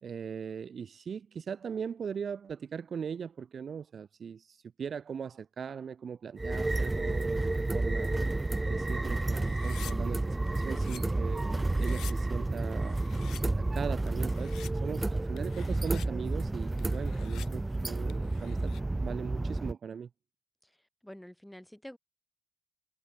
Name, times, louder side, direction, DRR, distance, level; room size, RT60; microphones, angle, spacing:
voice 1, 0.0-8.1 8.7-13.0 13.4-14.5 14.8-18.7 19.0-20.1, right 7 dB, 45° right, 2.0 m, -39 dB
sound 1, 6.4-19.7, right 2 dB, 15° right, 0.6 m, -31 dB
sound 2, 9.4-9.9 10.5-11.0 11.6-12.1 12.7-13.4 14.1-14.7 15.4-16.1 16.8-17.5 18.1-18.8, left 12 dB, 70° left, 5.4 m, -49 dB
voice 2, 11.1-11.9 16.6-17.4 21.0-22.0, left 1 dB, 5° left, 1.9 m, -49 dB
supercardioid pair, 80°, 0 cm